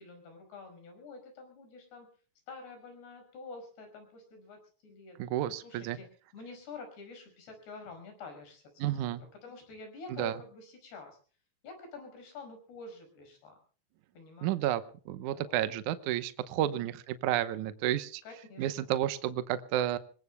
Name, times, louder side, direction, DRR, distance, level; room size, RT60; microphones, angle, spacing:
voice 1, 0.0-2.1 2.5-5.2 5.5-6.1 6.3-9.1 9.4-11.2 11.6-13.6 14.1-14.6 15.3-15.6 16.6-16.9 18.3-18.9, left 3 dB, 80° left, 6 dB, 7.4 m, -48 dB
voice 2, 5.2-6.0 8.8-9.2 10.1-10.4 14.4-18.2 18.6-20.0, right 12 dB, 80° right, 12 dB, 1.8 m, -31 dB
26.5 x 21.5 x 2.2 m, 0.41 s
omnidirectional pair, 4.7 m